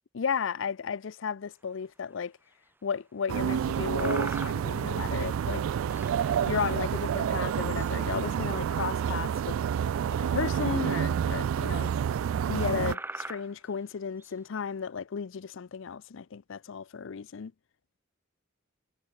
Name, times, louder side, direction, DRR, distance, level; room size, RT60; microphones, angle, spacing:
voice 1, 0.1-2.3 2.8-5.6 6.5-9.6 10.2-11.9 12.5-17.5, left 6 dB, 65° left, 0.5 m, -34 dB
sound 1, 1.8-1.9 2.5-2.6 3.4-3.6 4.0-4.9 5.2-5.4 5.9-6.9 7.5-7.9 8.6-8.9 10.2-10.3 10.9-11.0 11.8-11.9 12.4-12.5 12.8-14.3, right 2 dB, 10° right, 2.3 m, -42 dB
sound 2, 3.3-12.9, right 8 dB, 80° right, 0.3 m, -29 dB
head